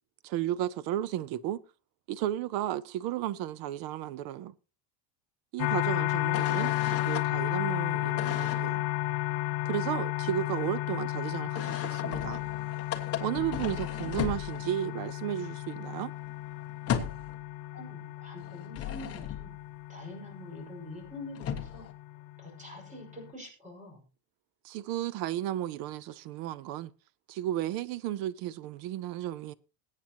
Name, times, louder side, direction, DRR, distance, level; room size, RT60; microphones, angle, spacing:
voice 1, 0.2-1.6 2.1-4.5 5.5-6.7 7.1-8.8 9.6-12.4 13.2-16.1 24.6-26.9 27.3-29.5, right 12 dB, 50° right, 0.5 m, -33 dB
sound 1, 5.6-23.3, left 16 dB, 80° left, 0.8 m, -33 dB
voice 2, 6.1-6.7 17.7-19.5 19.9-21.9 22.4-24.0, left 1 dB, 15° right, 5.2 m, -46 dB
sound 2, 6.3-7.3 8.2-8.7 11.5-14.9 15.3-15.4 15.7-17.4 18.4-19.6 21.0-21.1 21.3-21.9, left 9 dB, 30° left, 1.4 m, -36 dB
21.5 x 9.0 x 2.9 m
cardioid pair, 165°, 49 cm